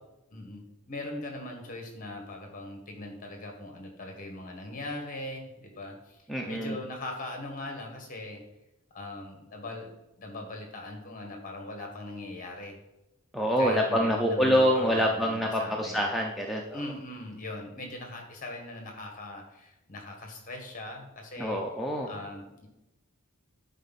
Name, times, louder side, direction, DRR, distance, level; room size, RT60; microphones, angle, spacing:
voice 1, 0.3-8.4 8.9-12.7 13.6-16.1 16.7-21.6 22.1-22.7, left 2 dB, 35° left, 2 dB, 1.7 m, -40 dB
voice 2, 6.3-6.8 13.3-16.8 21.4-22.1, equal, ahead, -1 dB, 0.6 m, -26 dB
9.8 x 4.7 x 4.2 m, 0.92 s
head